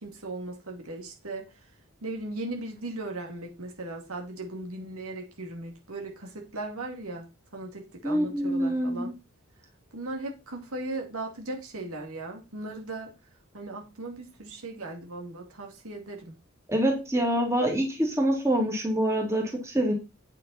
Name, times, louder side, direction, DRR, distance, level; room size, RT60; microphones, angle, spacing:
voice 1, 0.0-1.5 2.0-7.3 7.5-9.1 9.9-13.1 13.5-16.3, right 2 dB, 75° right, 2.4 m, -37 dB
voice 2, 8.0-9.1 16.7-19.9, right 1 dB, 10° right, 2.5 m, -25 dB
9.0 x 7.3 x 4.2 m
head